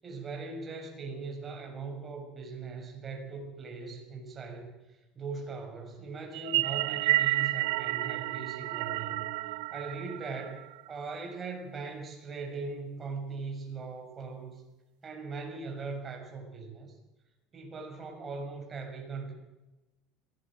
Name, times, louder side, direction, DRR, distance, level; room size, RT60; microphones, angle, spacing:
voice 1, 0.0-4.7 5.1-9.3 9.7-10.6 10.9-14.6 15.0-16.9 17.5-19.3, right 4 dB, 25° right, 1 dB, 6.7 m, -40 dB
sound 1, 6.3-10.9, right 17 dB, 85° right, 0.7 m, -30 dB
22.5 x 18.0 x 7.8 m, 1.0 s
supercardioid pair, 135°, 0 cm